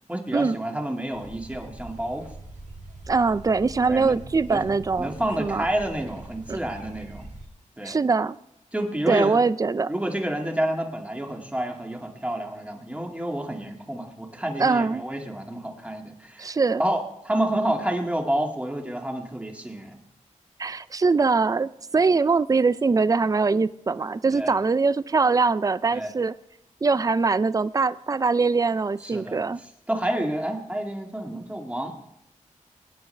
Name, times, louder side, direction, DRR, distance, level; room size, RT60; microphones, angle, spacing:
voice 1, 0.1-2.3 3.9-4.2 4.5-4.7 5.0-7.3 7.8-8.0 8.7-9.4 9.9-20.0 24.3-24.5 25.9-26.1 29.0-29.4 29.9-31.9, right 1 dB, 10° right, 2 dB, 2.0 m, -29 dB
sound 1, 1.1-7.5, right 2 dB, 75° right, 4.1 m, -43 dB
voice 2, 3.1-5.7 6.5-6.6 7.8-8.4 9.1-9.9 14.6-15.0 16.4-16.8 20.6-26.3 26.8-29.6, right 4 dB, 25° right, 16 dB, 0.4 m, -22 dB
21.5 x 9.6 x 3.3 m, 0.79 s
wide cardioid pair, 80°, 13 cm